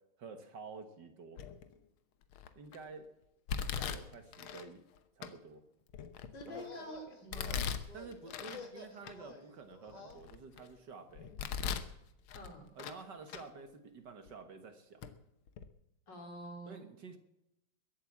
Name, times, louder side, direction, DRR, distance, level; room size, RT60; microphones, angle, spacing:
voice 1, 0.2-1.4 2.6-3.1 3.6-4.8 5.2-5.6 6.5-6.7 7.9-11.3 12.7-15.0 16.7-17.2, right 4 dB, 55° right, 8 dB, 1.9 m, -50 dB
Domestic sounds home sounds, 1.4-1.8 2.3-2.8 3.5-4.7 5.2-5.3 5.9-6.7 7.3-8.6 9.0-9.1 9.7-10.7 11.2-11.9 12.3-13.0 13.3-13.4 14.3-14.4 15.0-15.1 15.5-15.7, left 7 dB, 75° left, 1.8 m, -39 dB
voice 2, 6.3-7.8 12.3-12.7 16.1-16.8, equal, 55° left, 3 dB, 3.6 m, -47 dB
sound 1, 6.4-10.2, left 3 dB, 20° left, 1.7 m, -51 dB
21.5 x 8.4 x 7.2 m, 0.86 s
omnidirectional pair, 2.3 m